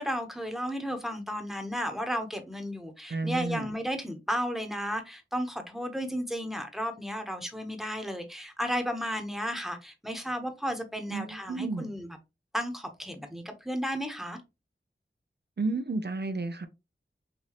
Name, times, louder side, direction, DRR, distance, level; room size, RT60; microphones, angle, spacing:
voice 1, 0.0-12.1 12.5-14.4, equal, ahead, 1.1 m, -33 dB
voice 2, 3.1-3.7 11.1-11.9 15.6-16.7, right 3 dB, 55° right, 0.6 m, -32 dB
5.7 x 2.6 x 3.1 m
wide cardioid pair, 45°, 20 cm